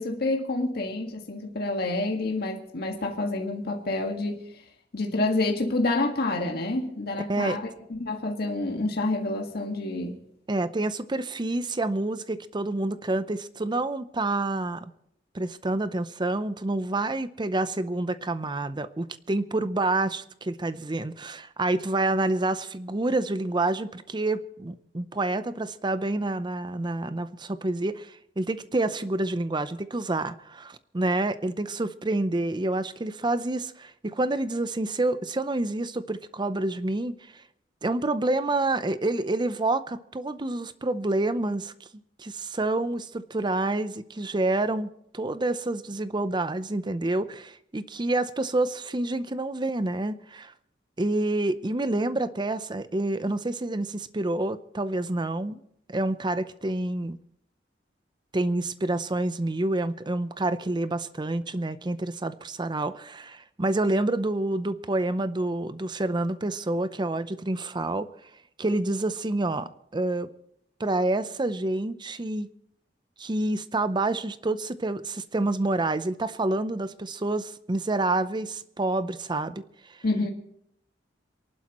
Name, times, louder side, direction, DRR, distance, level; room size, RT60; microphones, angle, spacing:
voice 1, 0.0-4.4 4.9-10.2 80.0-80.3, left 2 dB, 60° left, 1.7 m, -28 dB
voice 2, 10.5-14.8 15.3-37.2 37.8-41.7 42.2-50.5 51.0-55.6 55.9-57.2 58.3-68.1 68.6-70.3 70.8-72.5 73.2-79.6, right 2 dB, 25° right, 0.6 m, -28 dB
28.0 x 11.5 x 3.0 m
head